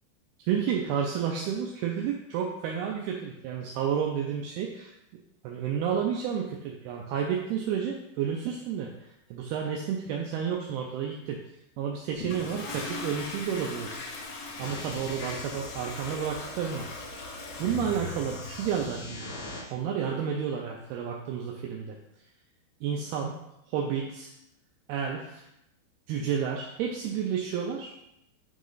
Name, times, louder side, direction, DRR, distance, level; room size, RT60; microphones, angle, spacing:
voice 1, 0.4-4.9 5.4-8.9 9.3-11.4 11.8-14.0 14.6-16.9 17.6-19.3 19.7-22.0 22.8-23.3 23.7-24.3 24.9-25.5 26.1-27.9, right 7 dB, 85° right, 0 dB, 2.2 m, -31 dB
Toilet flush, 12.1-19.0, left 3 dB, 70° left, 2.4 m, -40 dB
sound 1, 14.6-19.6, left 2 dB, 85° left, 4.7 m, -42 dB
9.1 x 3.1 x 3.8 m, 0.84 s
omnidirectional pair, 5.1 m